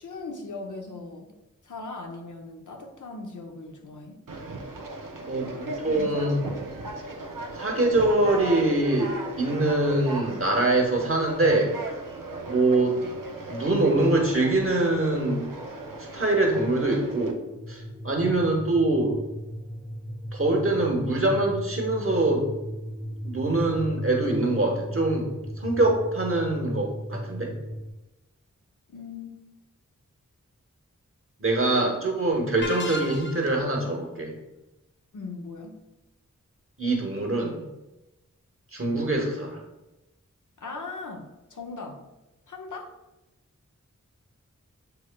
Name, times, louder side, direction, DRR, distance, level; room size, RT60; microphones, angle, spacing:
voice 1, 0.0-1.3 1.6-4.2 5.9-6.3 28.9-29.3 35.1-35.8 40.6-42.1 42.5-42.9, left 3 dB, 70° left, 2 dB, 0.7 m, -39 dB
Conversation, 4.3-17.3, right 2 dB, 90° right, 0.6 m, -37 dB
voice 2, 5.3-6.4 7.5-11.8 12.5-13.0 13.5-15.4 16.1-17.4 17.7-19.2 20.3-22.5 23.2-25.3 25.6-27.5 31.4-34.3 36.8-37.6 38.7-39.6, right 2 dB, 45° right, 0 dB, 1.1 m, -24 dB
sound 1, 17.5-27.9, equal, 20° right, 1.0 m, -36 dB
sound 2, 32.6-33.7, left 2 dB, 35° left, 0.5 m, -33 dB
7.7 x 3.1 x 2.2 m, 1.0 s
wide cardioid pair, 55°, 31 cm